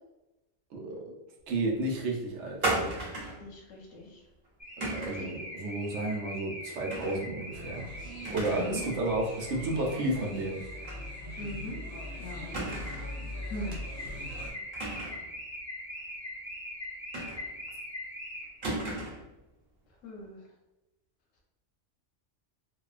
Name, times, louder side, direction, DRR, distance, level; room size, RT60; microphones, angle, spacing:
voice 1, 0.7-1.2 1.5-2.7 4.8-7.9 8.3-10.6, right 2 dB, 70° right, -1 dB, 0.9 m, -32 dB
sound 1, 2.6-3.4 4.8-5.3 6.9-7.2 7.6-7.7 8.2-8.8 9.1-9.2 10.8-11.0 11.4-11.5 12.5-13.2 14.7-15.3 17.1-17.7 18.6-19.3, right 2 dB, 45° right, 1.0 m, -34 dB
voice 2, 3.4-4.2 5.0-5.4 8.5-8.8 11.4-11.8 12.2-12.7 13.5-13.8 20.0-20.4, left 1 dB, 85° left, -1 dB, 1.0 m, -40 dB
Car / Alarm, 4.6-18.7, left 1 dB, 15° left, 0.7 m, -42 dB
sound 2, 7.5-14.5, left 1 dB, 20° right, 0.5 m, -42 dB
2.9 x 2.2 x 2.3 m, 0.98 s
omnidirectional pair, 1.3 m